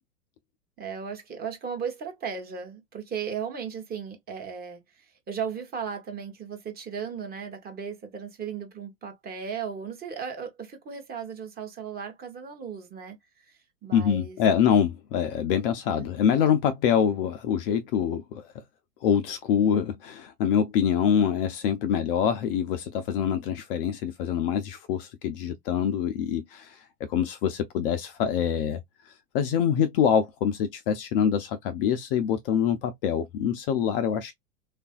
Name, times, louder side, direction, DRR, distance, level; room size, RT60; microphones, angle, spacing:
voice 1, 0.8-13.2 13.5-14.4 15.9-16.1 21.9-22.1, right 6 dB, 20° right, 0.8 m, -36 dB
voice 2, 13.9-18.4 19.0-26.8 27.1-28.8 29.3-34.3, left 8 dB, 40° left, 0.5 m, -25 dB
3.3 x 2.5 x 2.2 m
hypercardioid pair, 105°, 47 cm